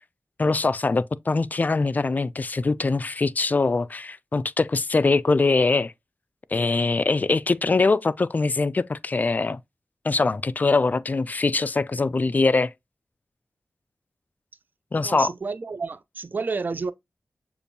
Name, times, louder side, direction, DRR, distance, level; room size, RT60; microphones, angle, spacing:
voice 1, 0.4-5.9 6.5-9.6 10.0-12.7 14.9-15.3, left 3 dB, 40° left, 0.3 m, -22 dB
voice 2, 15.0-16.9, right 4 dB, 45° right, 0.4 m, -30 dB
6.7 x 2.5 x 2.7 m
wide cardioid pair, 70°, 5 cm